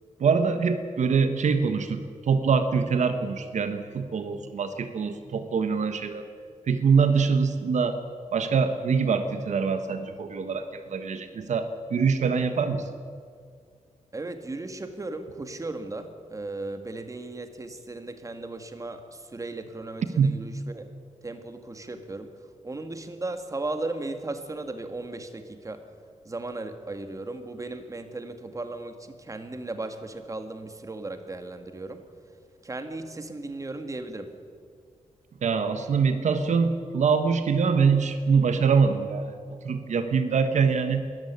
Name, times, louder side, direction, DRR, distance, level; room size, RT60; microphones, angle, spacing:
voice 1, 0.2-6.2 6.7-8.0 8.3-12.9 20.2-20.3 35.4-39.3 39.6-41.1, right 5 dB, 70° right, 9 dB, 1.3 m, -24 dB
voice 2, 14.1-20.9 21.2-22.3 22.6-25.8 26.2-32.0 32.6-34.3, right 2 dB, 25° right, 8 dB, 1.9 m, -36 dB
20.5 x 13.5 x 9.6 m, 2.1 s
wide cardioid pair, 105°, 13 cm